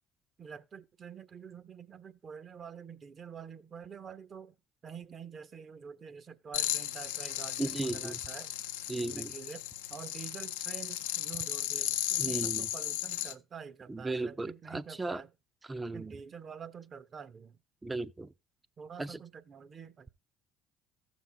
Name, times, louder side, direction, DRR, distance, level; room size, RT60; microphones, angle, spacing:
voice 1, 0.4-4.5 4.8-8.5 9.0-15.3 15.9-17.6 18.8-20.1, right 6 dB, 40° right, 1.1 m, -47 dB
sound 1, 6.5-13.3, left 13 dB, 75° left, 0.7 m, -35 dB
voice 2, 7.6-8.2 8.9-9.3 12.2-12.7 13.9-15.2 15.7-16.1 17.8-18.3 19.0-19.2, right 2 dB, 20° right, 0.7 m, -36 dB
15.0 x 6.3 x 3.4 m
hypercardioid pair, 60°, 0 cm